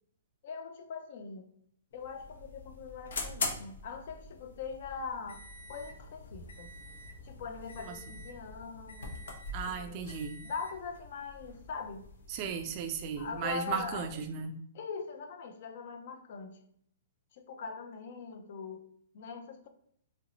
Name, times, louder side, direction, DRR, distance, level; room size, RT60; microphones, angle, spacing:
voice 1, 0.4-1.5 1.9-5.4 5.7-6.7 7.2-9.2 9.7-10.2 10.4-12.0 13.2-14.1 14.7-16.6 17.3-18.9 19.1-19.7, left 5 dB, 50° left, 6 dB, 0.5 m, -42 dB
sound 1, 1.9-14.3, left 3 dB, 85° left, 0.9 m, -44 dB
voice 2, 7.8-8.2 9.5-10.4 12.3-14.6, right 6 dB, 30° right, 7 dB, 0.3 m, -36 dB
3.0 x 2.6 x 2.9 m, 0.68 s
hypercardioid pair, 160°, 0 cm